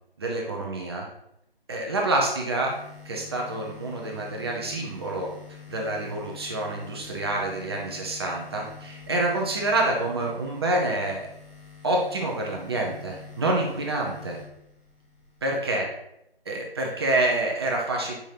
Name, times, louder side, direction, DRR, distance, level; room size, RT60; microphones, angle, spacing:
voice 1, 0.2-1.1 1.7-2.7 3.0-5.3 5.7-11.2 11.8-14.4 15.4-15.9 16.5-18.1, right 2 dB, 25° right, -1 dB, 0.9 m, -27 dB
sound 1, 2.6-15.5, left 6 dB, 30° left, 2.5 m, -46 dB
8.7 x 5.3 x 2.8 m, 0.79 s
figure-of-eight pair, 150°, 31 cm